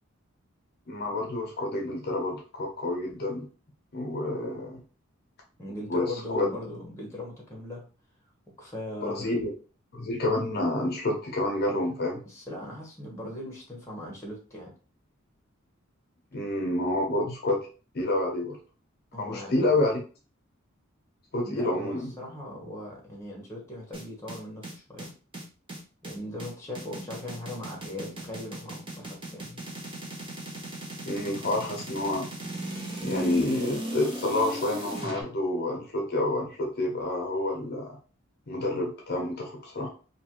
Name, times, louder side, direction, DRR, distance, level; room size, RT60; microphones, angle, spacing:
voice 1, 0.9-3.4 3.9-4.8 5.9-6.5 9.0-9.5 9.9-12.2 16.3-17.6 17.9-18.6 19.2-20.0 21.3-22.1 31.1-32.3 33.0-38.0 38.5-39.9, left 1 dB, 50° left, 0 dB, 0.7 m, -28 dB
voice 2, 5.6-7.9 8.5-9.4 12.2-14.7 19.1-19.8 21.4-25.1 26.0-29.6, left 1 dB, 15° left, -2 dB, 0.9 m, -39 dB
sound 1, 23.9-35.2, right 1 dB, 25° right, 0.8 m, -37 dB
2.8 x 2.5 x 2.9 m, 0.37 s
head